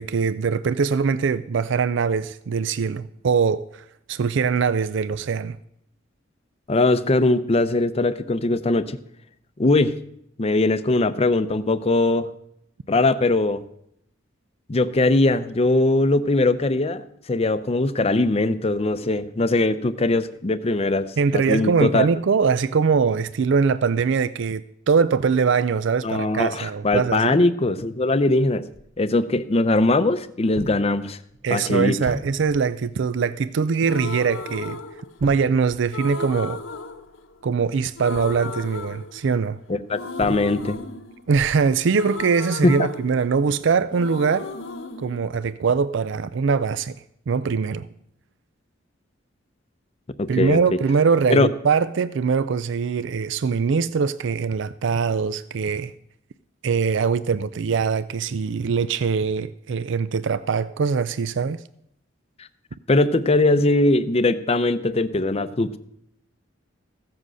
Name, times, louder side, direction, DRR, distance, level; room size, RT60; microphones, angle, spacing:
voice 1, 0.0-3.6 4.1-5.6 21.2-27.4 31.4-34.8 35.2-36.6 37.4-39.6 41.3-44.5 45.0-47.0 47.3-47.9 50.3-55.9 56.6-61.6, right 5 dB, 65° right, 0.4 m, -22 dB
voice 2, 6.7-9.0 9.6-10.0 10.4-12.3 12.9-13.6 14.7-22.1 26.0-28.6 29.0-31.2 31.5-32.0 39.7-40.8 42.6-42.9 50.2-50.6 51.3-51.5 62.9-65.8, left 2 dB, 30° left, 0.6 m, -21 dB
sound 1, 28.7-29.0 29.7-30.3 30.5-30.9 31.3-31.5 32.0-32.7 34.0-34.3 34.6-34.7 35.2-36.4 38.0-39.0 40.2-40.9 41.3-41.8 42.3-42.5, right 1 dB, 30° right, 1.6 m, -39 dB
sound 2, 33.8-35.5 35.9-37.7 38.0-39.5 39.9-43.6 43.9-46.0, left 3 dB, 75° left, 1.0 m, -35 dB
15.0 x 7.7 x 6.3 m
head